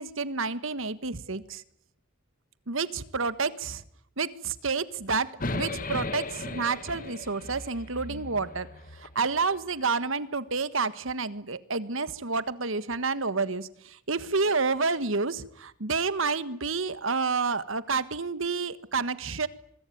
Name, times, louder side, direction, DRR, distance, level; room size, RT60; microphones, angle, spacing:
voice 1, 0.0-1.6 2.7-3.8 4.2-8.7 8.9-19.5, right 4 dB, 65° right, 14 dB, 1.5 m, -29 dB
sound 1, 5.4-9.6, left 2 dB, 40° left, 1.8 m, -36 dB
25.5 x 22.5 x 9.5 m, 0.70 s
head